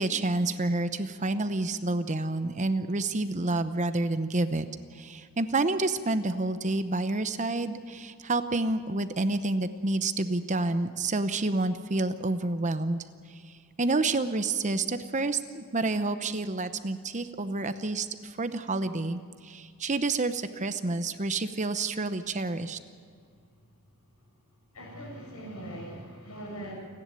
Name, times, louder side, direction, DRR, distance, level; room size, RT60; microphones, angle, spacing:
voice 1, 0.0-4.7 4.9-13.0 13.3-13.4 13.8-22.8, right 2 dB, 35° right, 10 dB, 0.8 m, -29 dB
voice 2, 24.7-26.7, right 1 dB, 80° left, -2 dB, 7.3 m, -41 dB
29.0 x 10.5 x 9.1 m, 2.1 s
head